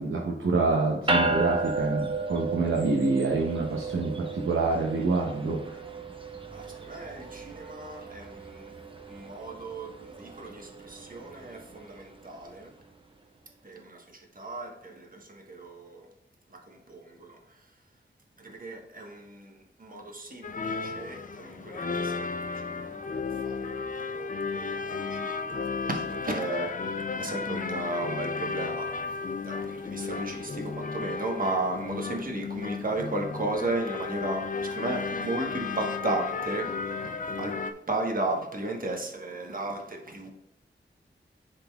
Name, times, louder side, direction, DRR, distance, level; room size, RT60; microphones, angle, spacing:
voice 1, 0.0-5.8, right 3 dB, 80° right, -1 dB, 0.8 m, -27 dB
sound 1, 1.1-12.7, right 3 dB, 25° right, 0.8 m, -34 dB
voice 2, 6.5-8.7 9.1-12.7 13.6-14.0 14.4-16.0 16.7-17.3 18.4-19.5 19.8-22.3 22.8-26.7 27.2-28.9 29.4-34.4 34.7-36.7 37.0-37.1 37.4-37.5 37.9-40.3, right 2 dB, 45° right, 1 dB, 1.2 m, -34 dB
sound 2, 20.4-37.7, left 4 dB, 40° left, 0.4 m, -34 dB
10.5 x 3.8 x 2.3 m, 0.86 s
wide cardioid pair, 75°, 20 cm